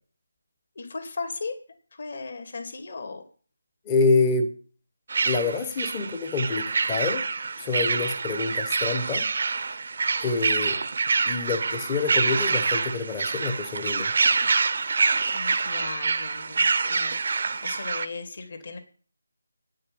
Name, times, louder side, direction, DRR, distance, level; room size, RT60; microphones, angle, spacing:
voice 1, 0.8-1.5 1.9-3.2 15.3-17.2 17.6-18.8, left 4 dB, 45° left, 6 dB, 2.4 m, -36 dB
voice 2, 3.9-4.5 5.3-7.3 7.6-9.2 10.2-10.8 11.2-14.1, left 4 dB, 10° left, 8 dB, 1.0 m, -26 dB
sound 1, 5.1-18.1, right 4 dB, 45° right, 0.7 m, -26 dB
9.6 x 6.5 x 7.8 m, 0.42 s
figure-of-eight pair, 175°, 0 cm